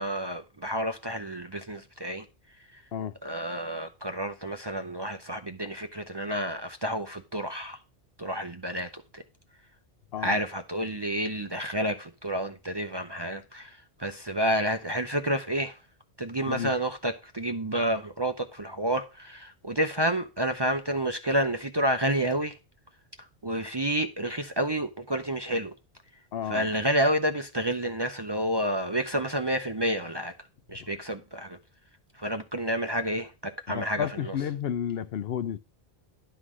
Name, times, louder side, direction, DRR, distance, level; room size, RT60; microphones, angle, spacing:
voice 1, 0.0-2.2 2.7-2.8 3.2-7.8 8.2-9.2 10.2-15.7 16.2-22.6 23.2-25.7 26.5-30.3 30.7-31.6 32.1-34.3, right 1 dB, 30° right, 0.5 m, -29 dB
voice 2, 26.3-26.7 33.7-35.6, left 9 dB, 70° left, 0.8 m, -31 dB
11.0 x 3.9 x 6.2 m
omnidirectional pair, 1.1 m